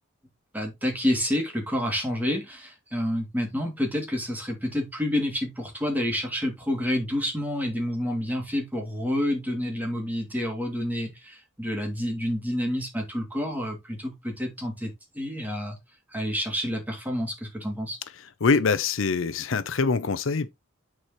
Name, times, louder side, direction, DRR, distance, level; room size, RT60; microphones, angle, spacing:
voice 1, 0.5-15.8 16.1-18.0, left 1 dB, 10° right, 2.3 m, -29 dB
voice 2, 18.4-20.5, left 4 dB, 80° left, 0.6 m, -24 dB
9.2 x 4.8 x 2.9 m
head